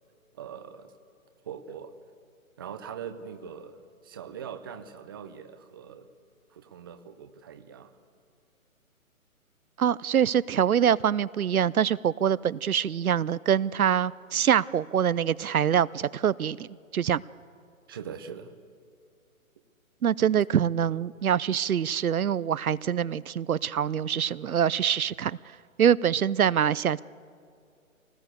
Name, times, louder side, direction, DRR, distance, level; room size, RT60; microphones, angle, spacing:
voice 1, 0.3-0.9 1.4-2.0 2.6-6.1 6.5-7.9 17.9-18.5, right 7 dB, 15° right, 9 dB, 0.5 m, -42 dB
voice 2, 9.8-17.2 20.0-25.4 25.8-27.0, right 9 dB, 80° right, 19 dB, 0.6 m, -25 dB
24.0 x 19.0 x 8.2 m, 2.4 s
figure-of-eight pair, 140°, 42 cm